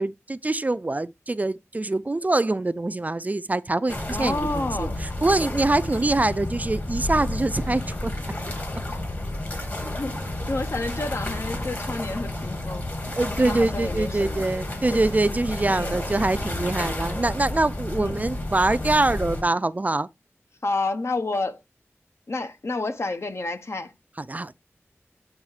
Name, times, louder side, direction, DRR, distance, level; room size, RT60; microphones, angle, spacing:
voice 1, 0.0-8.1 13.2-20.1 24.2-24.5, right 2 dB, 35° right, 0.4 m, -24 dB
sound 1, 3.9-19.4, left 1 dB, 40° left, 2.8 m, -31 dB
voice 2, 4.1-5.0 8.9-9.0 9.5-9.6 10.0-12.9 13.4-14.4 15.7-16.0 18.0-18.1 20.6-21.6 22.3-23.9, left 2 dB, 65° left, 1.0 m, -30 dB
8.5 x 3.6 x 4.8 m
wide cardioid pair, 75°, 5 cm